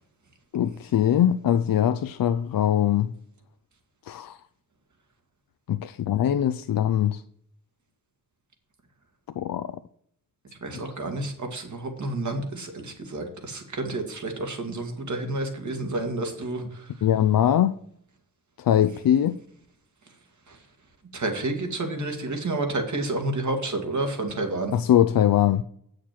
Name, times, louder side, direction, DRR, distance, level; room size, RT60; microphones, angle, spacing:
voice 1, 0.5-3.1 4.1-4.4 5.7-7.2 9.4-9.7 10.7-10.8 17.0-17.8 18.6-19.4 24.7-25.6, left 10 dB, 80° left, 0.5 m, -22 dB
voice 2, 10.6-16.6 21.1-24.7, right 2 dB, 55° right, 2.0 m, -30 dB
8.9 x 6.5 x 5.8 m
wide cardioid pair, 165°, 34 cm